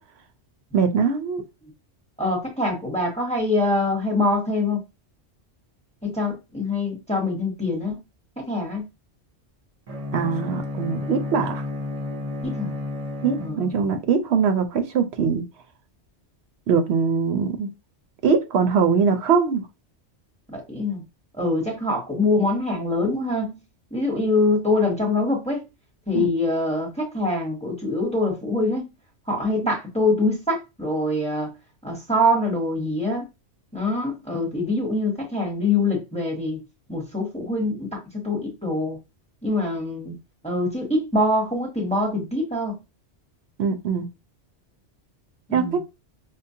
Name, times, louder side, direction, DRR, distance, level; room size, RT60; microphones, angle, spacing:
voice 1, 0.7-1.4 10.1-11.6 13.2-15.4 16.7-17.7 18.2-19.6 26.1-26.3 43.6-44.1 45.5-45.8, right 6 dB, 70° right, 0.8 m, -22 dB
voice 2, 2.2-4.8 6.0-8.0 8.4-8.9 12.4-12.7 13.4-14.0 20.5-21.0 21.4-23.6 23.9-25.6 26.1-28.8 29.3-31.5 31.8-33.3 33.7-36.6 36.9-39.0 39.4-40.1 40.4-42.8 45.5-45.8, left 2 dB, 5° left, 0.8 m, -24 dB
Bowed string instrument, 9.9-14.1, left 2 dB, 40° right, 0.6 m, -32 dB
5.2 x 2.0 x 2.7 m
omnidirectional pair, 1.2 m